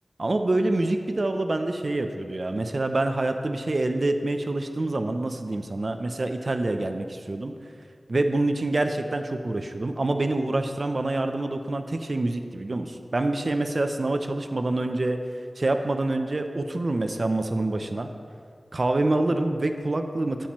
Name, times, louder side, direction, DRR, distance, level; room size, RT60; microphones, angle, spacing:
voice 1, 0.2-7.5 8.1-15.2 15.6-18.1 18.7-20.5, right 2 dB, 55° right, 6 dB, 0.6 m, -26 dB
11.5 x 8.8 x 3.1 m, 2.3 s
wide cardioid pair, 55°, 0 cm